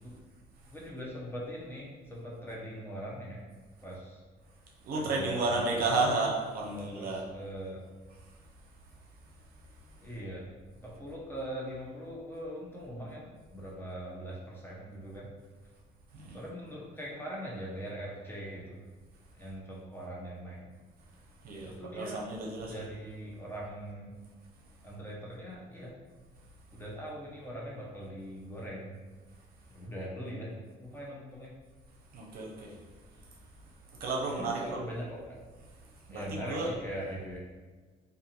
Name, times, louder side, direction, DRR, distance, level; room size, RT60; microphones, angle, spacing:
voice 1, 0.7-3.4 3.8-4.2 4.9-6.1 6.7-7.8 10.0-15.3 16.3-18.8 19.3-20.7 21.5-22.3 22.7-24.1 24.8-26.0 26.7-29.0 29.7-31.5 34.2-35.4 36.1-37.4, equal, 15° left, -5 dB, 0.6 m, -41 dB
voice 2, 4.8-7.2 16.1-16.4 21.4-22.8 32.1-32.7 34.0-34.8 36.1-36.2 36.5-36.7, right 3 dB, 60° right, -2 dB, 0.6 m, -32 dB
2.5 x 2.5 x 2.8 m, 1.4 s
cardioid pair, 110°, 17 cm